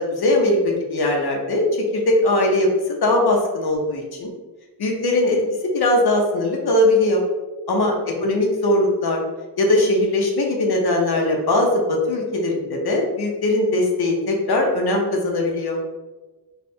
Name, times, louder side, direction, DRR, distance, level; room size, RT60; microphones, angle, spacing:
voice 1, 0.0-4.3 4.8-5.4 5.7-7.2 7.7-7.9 8.2-9.2 9.6-15.8, left 1 dB, 70° left, 1 dB, 0.9 m, -20 dB
3.3 x 2.3 x 4.3 m, 1.2 s
wide cardioid pair, 90°, 40 cm